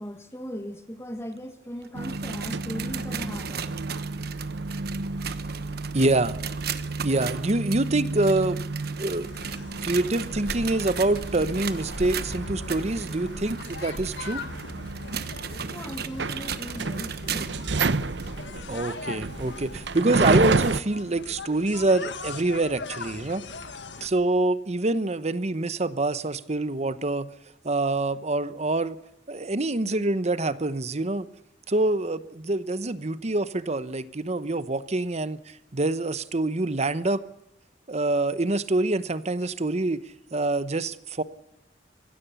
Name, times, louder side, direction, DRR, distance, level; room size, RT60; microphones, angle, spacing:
voice 1, 0.0-3.8 15.7-17.7, equal, 15° left, 7 dB, 1.5 m, -38 dB
sound 1, 1.8-17.7 18.2-18.3 19.0-19.1 20.0-20.1, right 7 dB, 60° right, 1.2 m, -37 dB
sound 2, 1.9-20.8, right 3 dB, 80° right, 0.8 m, -31 dB
voice 2, 5.9-6.4 7.0-8.6 9.0-9.3 9.8-14.4 18.7-23.4 24.0-27.3 27.6-29.0 29.3-31.3 31.7-37.2 37.9-40.0 40.3-41.2, right 2 dB, 40° right, 14 dB, 0.9 m, -26 dB
sound 3, 9.0-24.1, left 3 dB, 85° left, 1.6 m, -40 dB
23.5 x 16.0 x 7.1 m, 0.87 s
head